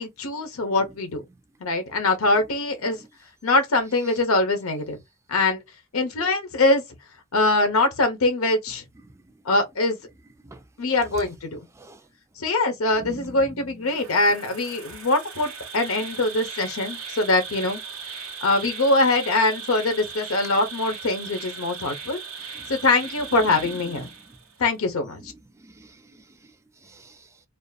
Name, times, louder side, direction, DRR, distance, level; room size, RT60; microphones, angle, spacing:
voice 1, 0.0-1.2 1.6-3.0 3.4-5.0 5.3-5.6 5.9-6.8 7.3-8.8 9.5-10.0 10.8-11.6 12.4-17.8 18.4-22.2 22.7-24.1 24.6-25.2, left 2 dB, 75° left, 0.8 m, -23 dB
voice 2, 9.0-9.4 10.4-10.6 11.7-12.1 13.0-13.9 22.5-22.7 23.3-24.4 25.2-27.4, right 2 dB, 15° right, 0.4 m, -45 dB
Insect, 13.8-24.6, right 6 dB, 80° right, 0.8 m, -38 dB
2.5 x 2.4 x 2.2 m
head